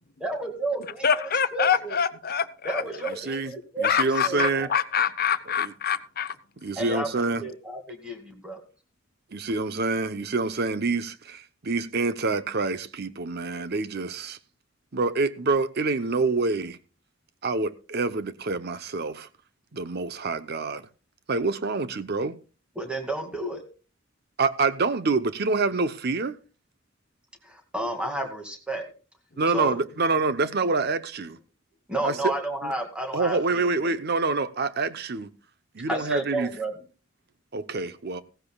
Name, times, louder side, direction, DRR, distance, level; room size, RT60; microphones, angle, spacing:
voice 1, 0.2-1.1 1.5-2.0 2.6-4.7 6.8-7.1 7.3-8.6 22.8-23.6 27.4-28.8 29.5-29.8 31.9-33.7 35.9-36.7, right 2 dB, 5° right, 2.3 m, -31 dB
voice 2, 1.0-2.8 3.8-6.3, left 7 dB, 50° left, 0.8 m, -25 dB
voice 3, 2.9-3.5 3.8-4.7 5.6-5.7 6.6-7.4 9.3-14.4 14.9-16.8 17.4-19.3 19.7-20.9 21.3-22.4 24.4-26.4 29.4-31.4 32.0-32.3 32.6-32.7 33.1-35.3 35.7-36.5 37.5-38.2, right 3 dB, 55° right, 0.8 m, -26 dB
16.0 x 15.0 x 2.3 m
head